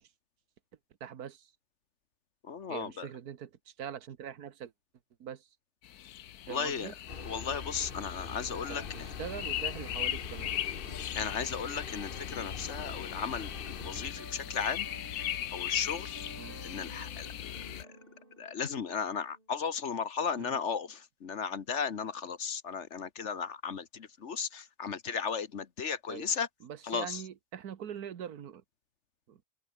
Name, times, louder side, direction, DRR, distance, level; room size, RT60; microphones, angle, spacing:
voice 1, 1.0-1.5 2.7-3.5 3.8-4.7 5.2-5.5 6.5-6.9 8.7-10.5 16.4-16.6 20.4-20.6 26.1-26.3 26.6-28.6 29.3-29.4, right 9 dB, 90° right, 1.7 m, -42 dB
voice 2, 2.4-3.1 6.5-6.9 7.2-8.8 11.1-14.9 15.5-16.1 16.6-17.9 18.4-26.5 26.8-27.2, left 6 dB, 55° left, 1.4 m, -35 dB
sound 1, 5.8-17.8, left 11 dB, 90° left, 1.4 m, -39 dB
sound 2, 7.1-14.1, left 4 dB, 40° left, 1.7 m, -43 dB
sound 3, 12.7-19.5, right 1 dB, 35° right, 5.2 m, -52 dB
open air
omnidirectional pair, 1.6 m